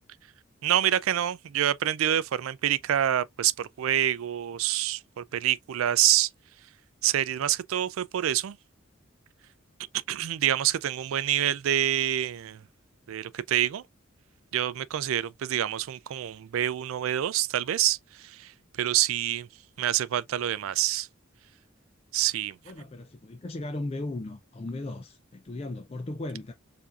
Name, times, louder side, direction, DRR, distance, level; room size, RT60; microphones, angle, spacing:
voice 1, 0.6-6.3 7.0-8.6 10.1-12.6 13.1-13.8 14.5-18.5 18.8-19.5 19.8-21.1 22.1-22.6, right 11 dB, 85° right, 0.3 m, -27 dB
voice 2, 22.7-26.5, left 2 dB, 30° left, 0.4 m, -36 dB
4.7 x 2.6 x 2.4 m
head